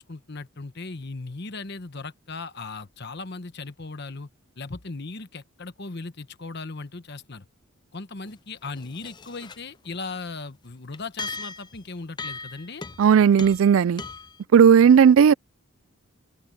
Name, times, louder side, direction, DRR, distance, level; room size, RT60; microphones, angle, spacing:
voice 1, 0.0-4.3 4.6-7.5 7.9-12.8, left 3 dB, 50° left, 1.1 m, -37 dB
sound 1, 8.3-8.4 8.7-9.6 9.9-10.0 10.9-11.8 12.2-13.1 13.4-13.7 14.0-14.4, left 4 dB, 20° left, 0.4 m, -38 dB
voice 2, 13.0-14.0 14.5-15.3, right 7 dB, 65° right, 0.3 m, -15 dB
open air
head